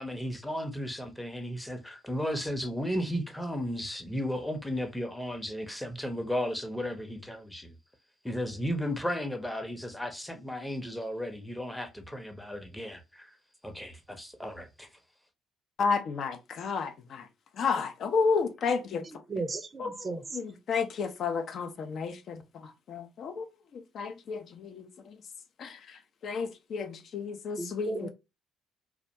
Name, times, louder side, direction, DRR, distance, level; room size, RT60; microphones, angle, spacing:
voice 1, 0.0-7.8 8.2-13.4 13.6-14.9, equal, 5° left, 0.6 m, -34 dB
voice 2, 15.8-17.3 17.6-19.0 19.8-19.9 20.3-23.5 23.7-25.2 25.6-25.8 26.2-28.1, left 5 dB, 55° left, 0.4 m, -31 dB
voice 3, 19.0-20.4 27.6-28.1, right 3 dB, 35° right, 0.4 m, -36 dB
2.4 x 2.1 x 2.7 m
figure-of-eight pair, 50°, 0 cm